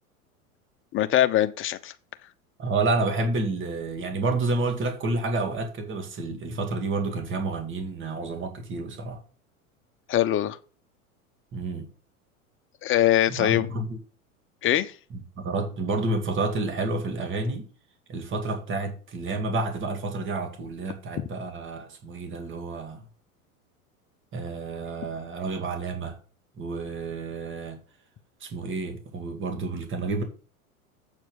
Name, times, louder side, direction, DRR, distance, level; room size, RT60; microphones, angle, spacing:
voice 1, 0.9-1.9 10.1-10.6 12.8-13.7 14.6-14.9, left 12 dB, 30° left, 0.8 m, -22 dB
voice 2, 2.6-9.2 11.5-11.9 13.4-14.0 15.1-17.6 18.1-23.0 24.3-26.2 26.6-27.8 28.4-30.2, right 3 dB, 25° right, 2.1 m, -29 dB
8.0 x 4.5 x 7.0 m
hypercardioid pair, 95°, 43 cm